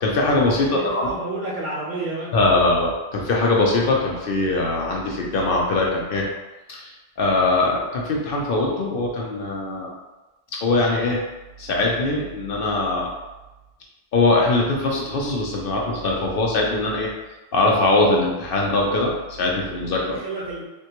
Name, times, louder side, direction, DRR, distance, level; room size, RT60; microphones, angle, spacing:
voice 1, 0.0-1.1 2.3-6.2 6.7-9.9 10.6-11.2 11.6-13.1 14.1-17.1 17.5-20.2, left 2 dB, 60° left, -2 dB, 0.7 m, -21 dB
voice 2, 0.6-2.3 20.1-20.6, right 2 dB, 55° right, -4 dB, 0.5 m, -30 dB
3.5 x 2.2 x 2.8 m, 1.1 s
omnidirectional pair, 1.1 m